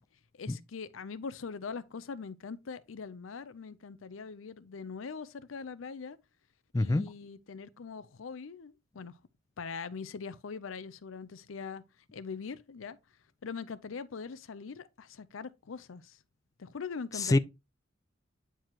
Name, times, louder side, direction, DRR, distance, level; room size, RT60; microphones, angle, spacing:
voice 1, 0.4-6.2 6.7-9.2 9.6-11.8 12.1-13.0 13.4-16.2 16.6-17.4, left 5 dB, 80° left, 0.6 m, -42 dB
voice 2, 6.7-7.1 17.1-17.4, left 2 dB, 15° left, 0.3 m, -25 dB
9.0 x 4.7 x 2.9 m
head